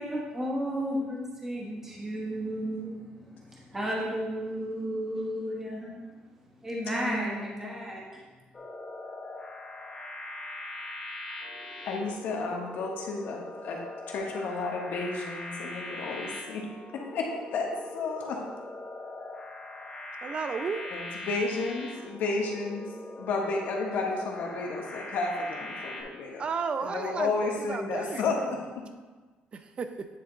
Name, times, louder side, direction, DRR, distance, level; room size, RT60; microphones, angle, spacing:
voice 1, 0.0-6.0 6.6-8.2, equal, 10° right, -4 dB, 1.1 m, -33 dB
voice 2, 0.6-1.3 2.4-3.3 7.0-7.9 11.9-13.8 14.1-16.7 16.9-18.4 20.9-22.9 23.2-26.4 26.8-28.9, left 3 dB, 70° left, 0 dB, 1.1 m, -32 dB
sound 1, 8.5-26.0, left 1 dB, 25° left, 0.9 m, -41 dB
voice 3, 20.2-20.9 26.4-28.5 29.5-30.1, right 5 dB, 35° right, 8 dB, 0.5 m, -33 dB
9.3 x 3.4 x 3.9 m, 1.3 s
cardioid pair, 135°, 3 cm